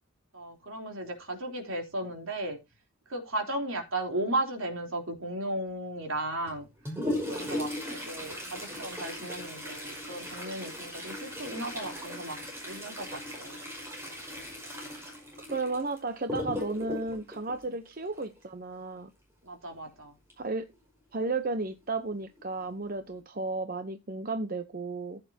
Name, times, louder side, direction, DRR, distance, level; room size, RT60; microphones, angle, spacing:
voice 1, 0.3-2.6 3.1-6.7 7.3-12.4 12.6-13.6 19.4-20.1, right 1 dB, 70° right, 3.6 m, -35 dB
Toilet flush, 6.4-18.4 20.3-20.4 20.7-20.8 21.6-21.7 22.4-22.6 23.1-23.2, left 1 dB, 10° right, 5.2 m, -38 dB
voice 2, 15.4-19.1 20.4-20.7 21.1-25.2, right 3 dB, 40° right, 0.8 m, -33 dB
14.5 x 8.8 x 2.8 m
head